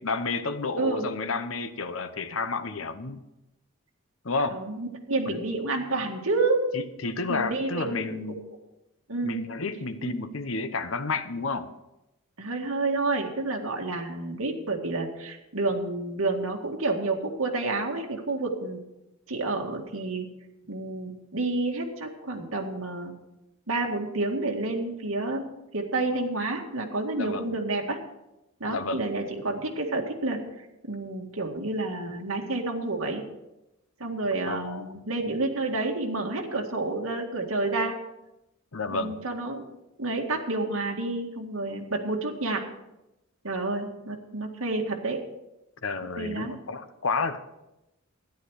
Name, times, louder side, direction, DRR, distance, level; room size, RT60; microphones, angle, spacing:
voice 1, 0.0-3.2 4.2-4.6 5.3-5.4 6.7-8.4 9.2-11.7 27.2-27.5 28.7-29.0 34.4-34.8 38.7-39.2 45.8-47.4, left 3 dB, 65° left, 10 dB, 0.9 m, -31 dB
voice 2, 0.8-1.1 4.5-6.6 7.3-8.4 9.1-9.4 10.0-10.2 12.4-18.8 19.3-20.3 20.7-23.1 23.7-28.0 28.6-30.4 30.9-33.2 34.0-38.0 38.9-39.7 40.0-42.6 43.4-45.2 46.2-46.6, right 2 dB, 80° right, 1 dB, 1.9 m, -29 dB
13.0 x 10.5 x 4.8 m, 0.92 s
head